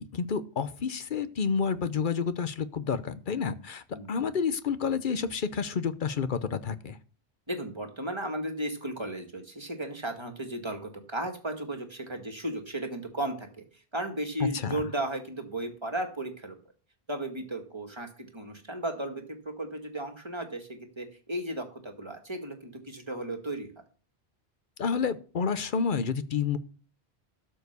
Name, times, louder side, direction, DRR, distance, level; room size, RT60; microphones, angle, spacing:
voice 1, 0.0-7.0 14.6-14.8 24.8-26.6, left 6 dB, 55° left, 13 dB, 0.9 m, -29 dB
voice 2, 7.5-16.6 17.1-23.7, right 1 dB, 25° right, 4 dB, 2.0 m, -35 dB
12.5 x 4.7 x 6.8 m, 0.39 s
omnidirectional pair, 1.1 m